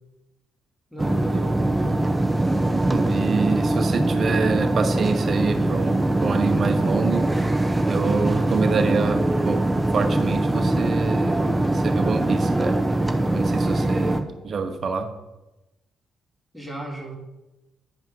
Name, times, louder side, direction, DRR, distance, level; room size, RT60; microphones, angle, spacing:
voice 1, 0.9-2.0 8.0-8.3 16.5-17.1, right 1 dB, 5° left, -1 dB, 2.7 m, -36 dB
sound 1, 1.0-14.2, right 1 dB, 10° right, 0.8 m, -22 dB
voice 2, 2.9-7.5 7.9-9.7 9.9-12.8 13.3-15.1, right 5 dB, 45° right, 7 dB, 1.1 m, -26 dB
9.5 x 5.4 x 5.4 m, 1.0 s
cardioid pair, 90°, 0 cm